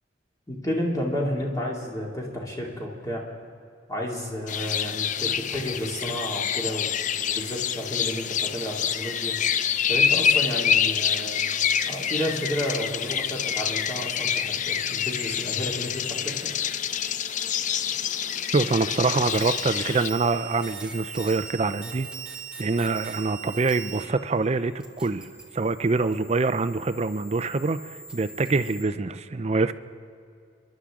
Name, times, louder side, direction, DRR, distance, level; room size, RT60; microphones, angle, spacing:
voice 1, 0.5-3.2 3.9-9.4 9.9-11.4 11.9-16.5, equal, 20° left, -3 dB, 2.6 m, -31 dB
sound 1, 4.5-20.1, left 8 dB, 45° left, 0.4 m, -27 dB
voice 2, 18.5-22.1 22.6-25.3 25.5-29.7, right 3 dB, 35° right, 11 dB, 0.5 m, -25 dB
sound 2, 19.3-24.0 24.3-28.8, right 6 dB, 5° right, 1.5 m, -41 dB
29.5 x 11.5 x 3.7 m, 2.4 s
head